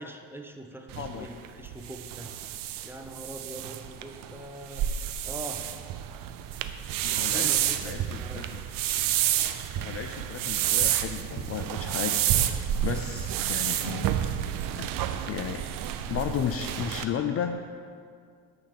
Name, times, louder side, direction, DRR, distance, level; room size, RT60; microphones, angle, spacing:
voice 1, 0.0-2.3 2.8-4.9 5.2-5.6 7.1-8.7, right 1 dB, 5° right, 3 dB, 0.7 m, -42 dB
sound 1, 0.9-17.0, right 11 dB, 55° right, 0.6 m, -29 dB
voice 2, 1.0-1.3 7.0-8.6 9.8-12.2 12.8-14.4 14.7-14.9 15.3-15.7 16.1-17.7, left 8 dB, 35° left, 6 dB, 0.4 m, -34 dB
8.6 x 3.3 x 6.7 m, 2.1 s
hypercardioid pair, 60°, 42 cm